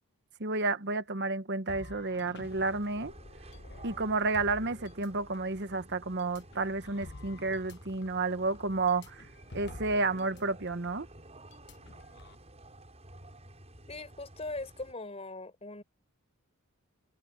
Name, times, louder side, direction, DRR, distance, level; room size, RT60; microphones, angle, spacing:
voice 1, 0.4-3.1 3.8-9.3 9.5-11.1, right 3 dB, 50° right, 1.3 m, -31 dB
sound 1, 1.7-5.6 6.2-10.4 10.7-10.9 11.5-12.4, left 2 dB, 50° left, 1.2 m, -50 dB
sound 2, 2.4-14.9, right 1 dB, 30° right, 8.0 m, -52 dB
voice 2, 13.9-15.8, left 2 dB, 30° left, 4.7 m, -40 dB
head